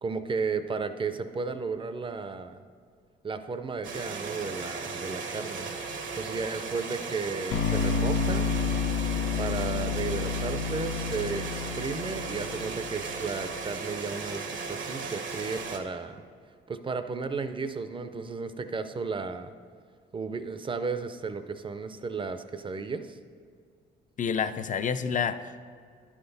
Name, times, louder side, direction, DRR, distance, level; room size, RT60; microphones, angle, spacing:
voice 1, 0.0-2.6 3.2-5.7 6.2-8.5 9.4-16.2 16.7-19.5 20.1-23.2, right 4 dB, 25° right, 10 dB, 0.5 m, -34 dB
sound 1, 3.8-15.8, right 4 dB, 70° right, 1.0 m, -36 dB
sound 2, 7.5-13.5, left 6 dB, 80° left, 0.7 m, -30 dB
voice 2, 24.2-25.6, left 7 dB, 40° left, 11 dB, 0.5 m, -29 dB
11.0 x 5.9 x 4.0 m, 2.1 s
cardioid pair, 90°, 20 cm